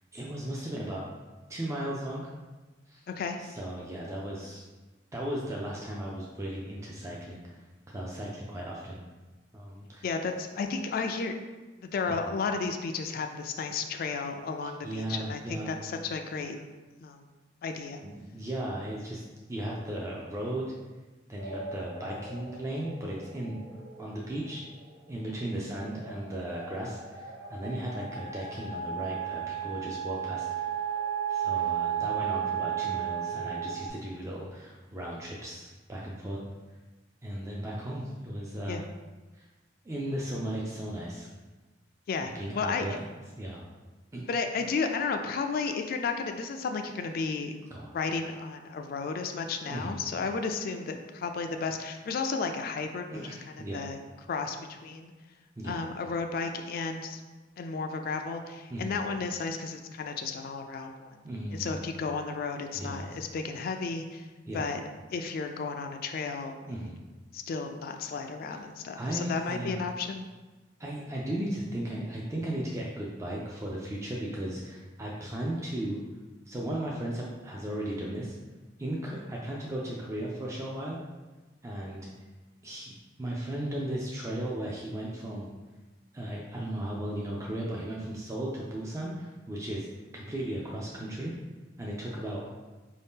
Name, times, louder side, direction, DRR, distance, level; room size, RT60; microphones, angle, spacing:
voice 1, 0.1-1.1 1.5-2.3 2.9-3.1 3.4-4.7 5.1-9.1 9.5-10.1 12.1-12.3 14.8-15.8 18.0-19.2 19.5-20.6 21.3-23.7 24.0-24.6 25.1-30.7 31.3-36.4 37.2-38.8 39.3-39.5 39.8-41.3 42.2-43.1 43.4-43.6 44.1-44.3 47.7-47.9 49.6-50.0 53.1-53.9 55.6-55.8 58.7-59.0 61.2-61.8 62.7-63.2 64.5-64.7 66.7-67.0 69.0-69.9 70.8-76.0 76.5-78.4 78.8-81.0 81.6-82.1 82.6-82.9 83.2-85.5 86.1-89.9 90.1-91.3 91.8-92.4, right 1 dB, 15° right, -4 dB, 0.4 m, -36 dB
voice 2, 3.1-3.4 10.0-11.3 11.8-16.6 17.0-17.2 17.6-18.0 38.7-38.8 42.1-42.8 44.3-47.5 47.9-53.4 53.7-54.0 54.3-55.1 55.6-57.2 57.6-61.2 61.5-64.2 64.5-64.8 65.1-66.6 67.3-70.2, left 4 dB, 50° left, 5 dB, 0.3 m, -33 dB
sound 1, 21.4-25.1 25.6-33.9, right 9 dB, 55° right, 1.2 m, -35 dB
4.6 x 2.7 x 3.5 m, 1.2 s
head